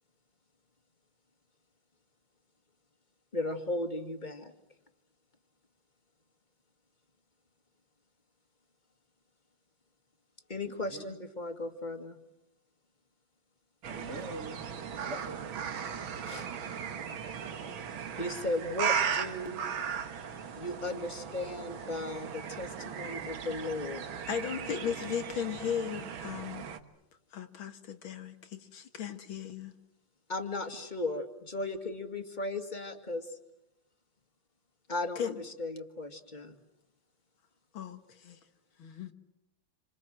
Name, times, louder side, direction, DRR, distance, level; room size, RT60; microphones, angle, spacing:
voice 1, 3.3-4.5 10.5-12.2 16.2-16.5 18.2-19.6 20.6-24.1 30.3-33.3 34.9-36.6, left 2 dB, 25° left, 2.2 m, -36 dB
voice 2, 10.7-11.2 13.8-14.6 15.0-15.5 30.7-30.8, right 2 dB, 40° right, 1.6 m, -43 dB
sound 1, 13.8-26.8, right 7 dB, 85° right, 2.2 m, -37 dB
voice 3, 24.3-26.7 27.3-29.8 35.2-35.4 37.7-38.4 38.8-39.1, left 8 dB, 80° left, 2.4 m, -36 dB
28.5 x 26.5 x 7.7 m
omnidirectional pair, 2.1 m